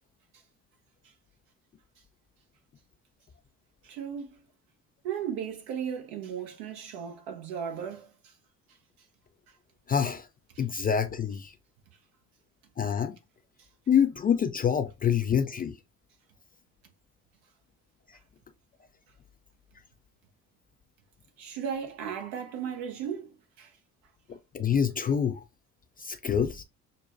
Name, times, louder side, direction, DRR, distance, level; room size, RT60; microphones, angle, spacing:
voice 1, 3.8-4.5 5.0-8.3 10.5-10.6 21.4-23.7, right 8 dB, 65° right, 1.1 m, -36 dB
voice 2, 9.9-10.3 10.6-11.5 12.8-13.2 13.9-15.8 24.3-25.4 26.0-26.6, left 8 dB, 25° left, 0.3 m, -26 dB
6.4 x 2.2 x 2.5 m
hypercardioid pair, 55°, 41 cm